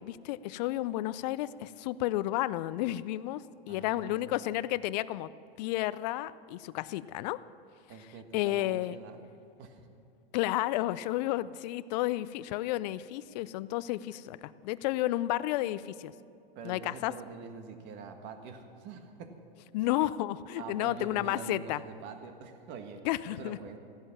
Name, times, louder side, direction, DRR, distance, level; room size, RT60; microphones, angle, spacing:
voice 1, 0.0-5.3 5.6-7.4 8.3-9.0 10.3-16.1 16.6-17.1 19.7-21.8 23.0-23.6, left 15 dB, 45° left, 17 dB, 0.5 m, -32 dB
voice 2, 3.7-4.4 7.9-9.2 9.6-9.9 16.6-19.4 20.6-23.8, right 5 dB, 40° right, 6 dB, 1.7 m, -45 dB
16.0 x 11.0 x 7.3 m, 2.5 s
hypercardioid pair, 120°, 29 cm